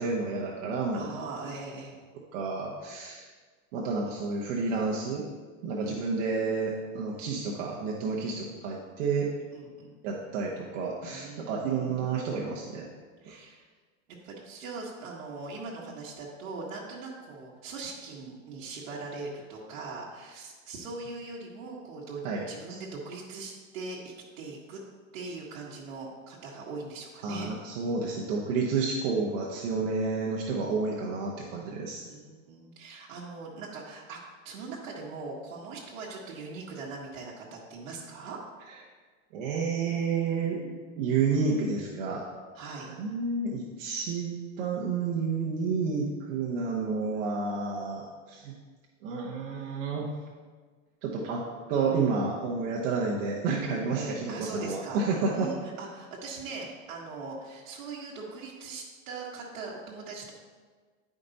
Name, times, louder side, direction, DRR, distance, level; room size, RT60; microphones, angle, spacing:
voice 1, 0.0-1.1 2.3-3.3 3.7-5.3 5.6-9.3 10.0-12.9 13.3-13.4 22.2-22.8 27.2-32.0 39.3-42.2 43.0-48.5 49.0-50.1 51.0-55.5, right 4 dB, 70° right, -3 dB, 1.2 m, -30 dB
voice 2, 0.9-1.9 5.8-6.0 9.5-9.9 11.1-12.2 13.2-13.7 14.2-24.8 25.1-27.5 32.1-34.2 34.4-38.4 42.5-42.9 53.9-60.3, right 3 dB, 90° right, -4 dB, 1.5 m, -41 dB
10.0 x 5.2 x 4.1 m, 1.5 s
supercardioid pair, 145°, 39 cm